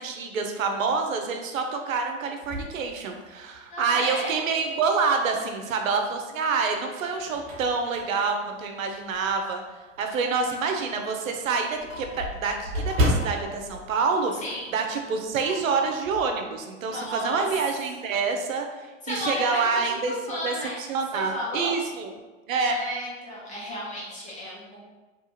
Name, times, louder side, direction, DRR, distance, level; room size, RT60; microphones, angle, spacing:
voice 1, 0.0-9.6 10.0-14.3 14.7-18.7 19.1-20.5 20.9-22.1 22.5-22.8, right 4 dB, 80° right, 4 dB, 0.5 m, -27 dB
sound 1, 2.4-3.7 4.3-4.4 5.8-6.4 6.8-9.5 9.9-10.1 10.4-10.5 10.8-10.9 11.1-14.9 15.2-15.4 15.7-16.3, equal, 40° right, 1.1 m, -32 dB
voice 2, 3.7-4.4 14.3-14.7 16.9-17.5 19.0-20.8 21.1-21.8 22.6-24.8, left 1 dB, 20° left, -6 dB, 0.9 m, -33 dB
sound 2, 10.6-11.1 11.9-12.4 12.9-13.5 14.2-14.7 15.4-16.1 16.9-17.7, left 3 dB, 70° left, 0.9 m, -44 dB
2.8 x 2.4 x 2.7 m, 1.2 s
hypercardioid pair, 100°, 39 cm